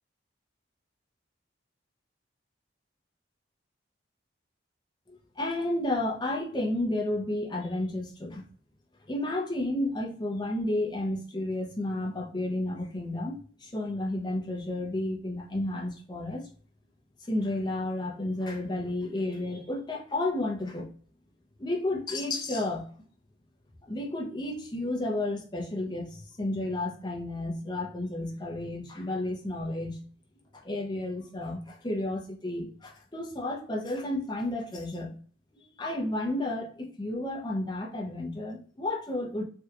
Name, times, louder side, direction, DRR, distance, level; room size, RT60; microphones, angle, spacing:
voice 1, 5.1-8.4 9.1-16.4 17.3-20.9 21.6-22.9 23.9-30.0 30.6-35.2 35.5-39.4, left 1 dB, 20° left, 0 dB, 0.6 m, -32 dB
3.4 x 2.3 x 2.8 m, 0.44 s
head